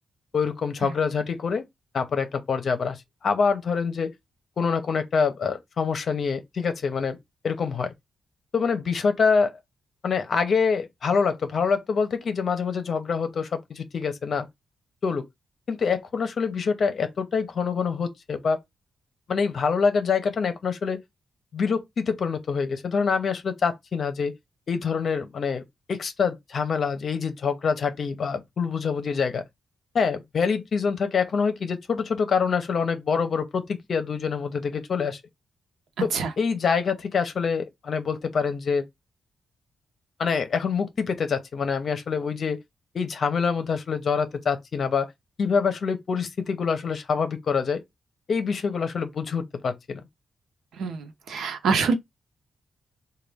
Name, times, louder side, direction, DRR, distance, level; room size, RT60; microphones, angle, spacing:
voice 1, 0.3-1.6 1.9-4.1 4.6-7.2 7.4-7.9 8.5-9.5 10.0-14.5 15.0-15.2 15.7-18.6 19.3-21.0 21.5-24.3 24.7-29.4 29.9-35.2 36.0-38.8 40.2-42.6 42.9-45.1 45.4-47.8 48.3-50.0, left 5 dB, 50° left, 0.7 m, -25 dB
voice 2, 36.0-36.3 50.8-51.9, right 5 dB, 90° right, 0.7 m, -25 dB
4.3 x 2.3 x 3.4 m
wide cardioid pair, 155°, 0 cm